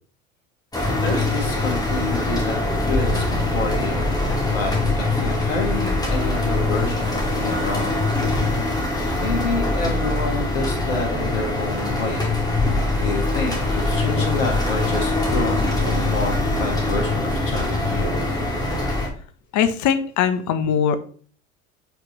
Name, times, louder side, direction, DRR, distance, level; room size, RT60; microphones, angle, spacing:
sound 1, 0.7-19.1, left 2 dB, 10° left, 2.3 m, -23 dB
voice 1, 1.0-2.6 2.8-4.1 4.5-8.0 9.2-12.4 13.0-18.1, left 3 dB, 85° left, 1 dB, 1.7 m, -28 dB
voice 2, 19.5-21.0, left 8 dB, 50° left, 11 dB, 1.0 m, -20 dB
7.7 x 5.1 x 3.2 m, 0.43 s
hypercardioid pair, 80°, 39 cm